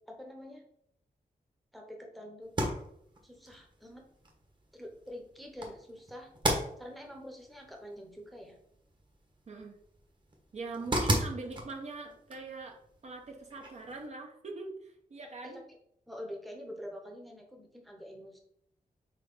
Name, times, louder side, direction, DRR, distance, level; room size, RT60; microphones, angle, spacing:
voice 1, 0.1-0.6 1.7-2.5 3.2-4.0 4.7-6.3 6.8-8.6 15.4-15.6 16.1-18.4, equal, ahead, 1 dB, 0.9 m, -46 dB
sound 1, 2.4-14.1, right 1 dB, 30° right, 1.3 m, -38 dB
voice 2, 9.5-9.8 10.5-15.6, right 3 dB, 50° right, 2 dB, 0.9 m, -42 dB
4.5 x 4.0 x 5.4 m, 0.72 s
wide cardioid pair, 165°, 15 cm